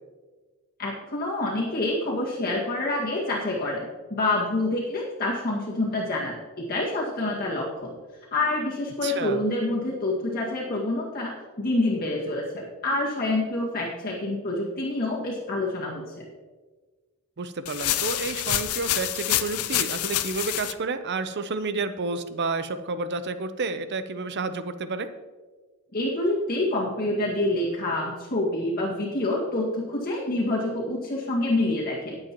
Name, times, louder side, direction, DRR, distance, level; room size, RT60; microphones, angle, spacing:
voice 1, 0.8-7.9 8.3-16.3 25.9-32.2, left 2 dB, 45° left, -5 dB, 1.9 m, -27 dB
voice 2, 9.0-9.4 17.4-25.1, right 3 dB, 50° right, 11 dB, 0.7 m, -30 dB
sound 1, 17.7-20.7, left 13 dB, 80° left, 0.6 m, -27 dB
19.5 x 7.8 x 3.0 m, 1.4 s
head